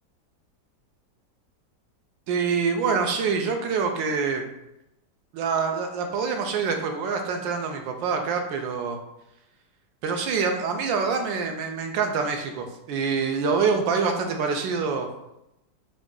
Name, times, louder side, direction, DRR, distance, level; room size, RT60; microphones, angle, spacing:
voice 1, 2.3-4.4 5.3-9.0 10.0-15.1, right 5 dB, 90° right, 4 dB, 1.4 m, -26 dB
4.9 x 2.6 x 3.7 m, 0.88 s
omnidirectional pair, 2.0 m